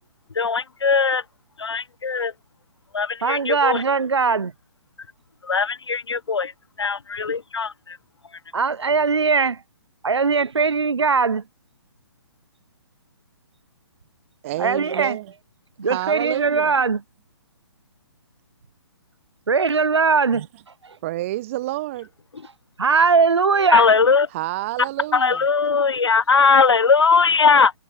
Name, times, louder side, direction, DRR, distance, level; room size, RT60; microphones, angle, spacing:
voice 1, 0.3-1.2 1.6-2.3 2.9-3.8 5.4-6.5 6.8-8.0 23.7-24.3 25.1-27.7, left 5 dB, 75° left, 0.6 m, -19 dB
voice 2, 3.2-4.5 8.5-9.6 10.0-11.4 14.6-15.2 15.8-17.0 19.5-20.5 20.8-21.0 22.8-23.9, right 5 dB, 85° right, 0.5 m, -20 dB
voice 3, 14.4-15.3 15.8-16.7 20.3-20.5 21.0-22.1 24.3-25.4, right 16 dB, 30° right, 0.6 m, -28 dB
figure-of-eight pair, 135°, 14 cm